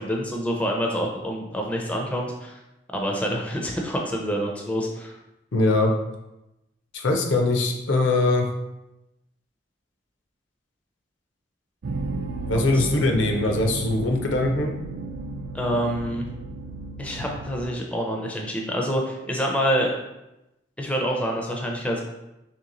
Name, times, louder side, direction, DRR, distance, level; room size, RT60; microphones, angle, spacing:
voice 1, 0.0-2.6 2.9-5.1 12.5-12.9 15.5-16.2 17.0-19.9 20.8-22.0, equal, 5° left, -1 dB, 0.4 m, -27 dB
voice 2, 5.5-5.9 6.9-8.5 12.5-14.7, left 2 dB, 75° left, 2 dB, 0.6 m, -22 dB
sound 1, 11.8-17.7, right 2 dB, 60° right, 0.4 m, -33 dB
3.3 x 2.9 x 3.8 m, 0.93 s
head